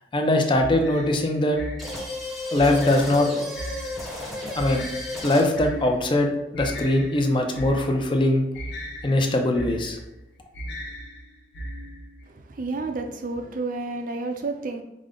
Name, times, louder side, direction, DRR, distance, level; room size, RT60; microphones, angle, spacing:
voice 1, 0.1-1.6 2.5-3.3 4.6-4.9 5.2-8.5 9.0-10.0, left 1 dB, 30° left, 3 dB, 0.5 m, -21 dB
sound 1, 0.6-12.3, equal, 70° left, 0.7 m, -38 dB
sound 2, 1.8-5.7, left 1 dB, ahead, 0.8 m, -33 dB
voice 2, 12.3-14.8, right 3 dB, 50° right, 5 dB, 0.5 m, -30 dB
5.0 x 2.1 x 3.7 m, 0.95 s
head